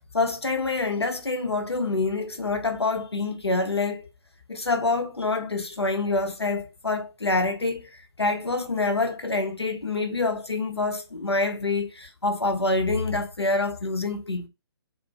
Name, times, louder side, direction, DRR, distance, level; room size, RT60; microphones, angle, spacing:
voice 1, 0.1-4.1 4.5-14.5, left 3 dB, 85° left, 0.6 m, -26 dB
2.8 x 2.5 x 2.3 m
figure-of-eight pair, 125°, 13 cm